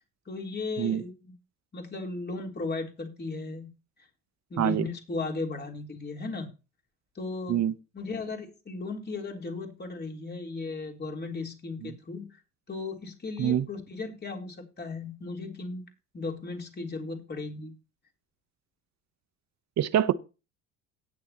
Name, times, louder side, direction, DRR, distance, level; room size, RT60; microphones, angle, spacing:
voice 1, 0.3-1.3 1.7-3.7 4.5-6.5 7.2-7.6 7.9-12.4 12.7-15.8 16.1-17.8, left 3 dB, 25° left, 3.6 m, -36 dB
voice 2, 4.6-4.9 7.5-7.7 11.8-11.9 13.4-13.6 19.8-20.1, right 10 dB, 40° right, 1.0 m, -25 dB
18.5 x 6.9 x 3.0 m
hypercardioid pair, 70°, 40 cm